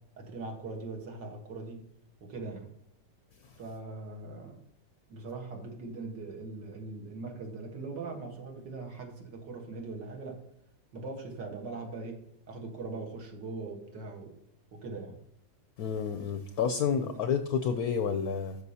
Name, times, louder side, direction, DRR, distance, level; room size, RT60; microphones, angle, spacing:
voice 1, 0.2-1.8 2.2-2.7 3.6-4.6 5.1-10.4 10.9-12.2 12.5-14.3 14.7-15.2 17.0-17.2, right 3 dB, 70° right, 2 dB, 2.0 m, -41 dB
voice 2, 15.8-18.6, left 7 dB, 70° left, 9 dB, 0.9 m, -30 dB
12.5 x 5.1 x 2.8 m, 0.74 s
omnidirectional pair, 2.1 m